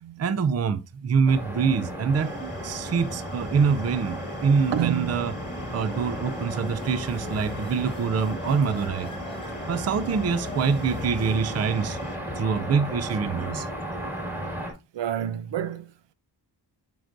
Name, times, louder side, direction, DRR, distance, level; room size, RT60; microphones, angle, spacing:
voice 1, 0.2-2.3 2.6-5.3 5.7-9.1 9.7-12.0 12.4-13.7, right 6 dB, 40° right, 0.5 m, -25 dB
sound 1, 1.3-14.7, equal, 5° right, 2.0 m, -34 dB
sound 2, 2.1-12.2, left 4 dB, 35° left, 0.8 m, -49 dB
voice 2, 4.7-5.2 14.9-16.1, right 10 dB, 85° right, 0.7 m, -29 dB
sound 3, 5.4-12.8, left 2 dB, 10° left, 1.0 m, -46 dB
7.7 x 5.2 x 2.6 m
wide cardioid pair, 130°, 42 cm